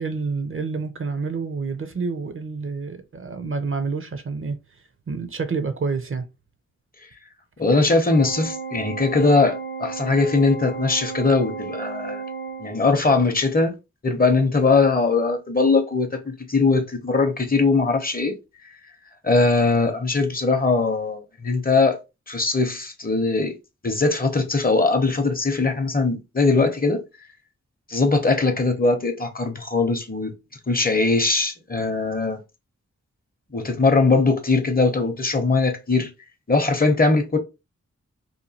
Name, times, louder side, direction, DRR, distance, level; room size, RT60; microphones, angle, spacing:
voice 1, 0.0-4.6 5.1-6.3, right 4 dB, 45° right, 0.4 m, -28 dB
voice 2, 7.6-12.2 12.6-13.7 14.0-18.4 19.2-22.0 22.3-23.5 23.8-27.0 27.9-30.3 30.7-32.4 33.5-36.1 36.5-37.4, left 3 dB, 30° left, 0.6 m, -20 dB
Organ, 8.1-13.2, right 4 dB, 75° right, 0.9 m, -34 dB
2.9 x 2.2 x 2.7 m
wide cardioid pair, 75°, 30 cm